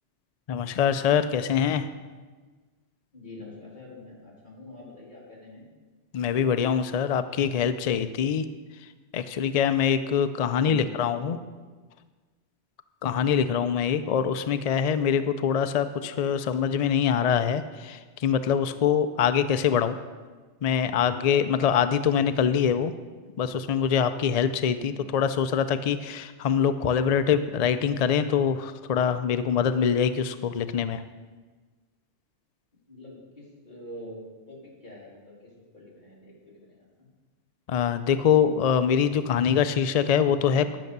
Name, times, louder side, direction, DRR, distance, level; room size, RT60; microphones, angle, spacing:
voice 1, 0.5-1.9 6.1-8.5 9.1-11.4 13.0-20.0 20.6-22.9 23.4-31.0 37.7-40.8, left 7 dB, 65° left, 11 dB, 0.3 m, -24 dB
voice 2, 3.1-5.7 10.5-11.3 24.8-25.1 32.9-37.1, left 2 dB, 40° left, -5 dB, 3.2 m, -45 dB
10.5 x 6.7 x 6.6 m, 1.4 s
omnidirectional pair, 1.2 m